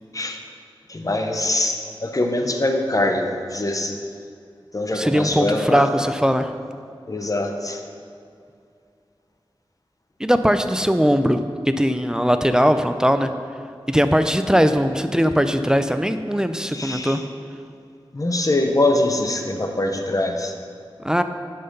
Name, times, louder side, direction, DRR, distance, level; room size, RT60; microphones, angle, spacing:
voice 1, 0.9-4.0 4.7-5.9 7.1-7.8 16.7-17.2 18.1-20.5, left 2 dB, 40° left, 4 dB, 0.9 m, -23 dB
voice 2, 4.9-6.5 10.2-13.3 13.9-17.2 21.0-21.2, equal, 5° right, 9 dB, 0.4 m, -20 dB
10.5 x 5.8 x 5.4 m, 2.4 s
wide cardioid pair, 75°, 9 cm